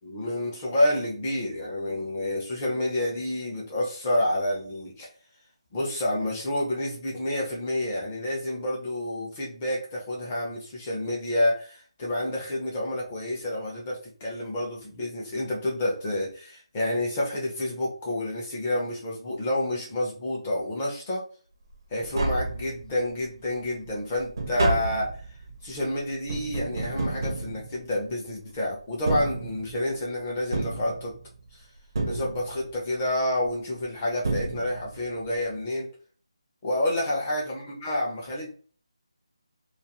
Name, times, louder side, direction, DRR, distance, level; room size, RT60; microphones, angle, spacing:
voice 1, 0.0-5.1 5.7-21.2 21.9-25.2 25.6-31.1 31.5-31.6 32.0-35.9 36.6-38.6, left 1 dB, 15° left, -2 dB, 0.5 m, -29 dB
Tap, 21.7-21.8 22.0-23.1 23.5-28.3 28.9-30.0 30.5-31.5 31.9-32.8 33.8-33.9 34.2-35.1 35.3-35.4, right 2 dB, 40° right, 0.5 m, -31 dB
2.3 x 2.3 x 2.8 m, 0.42 s
figure-of-eight pair, 175°, 3 cm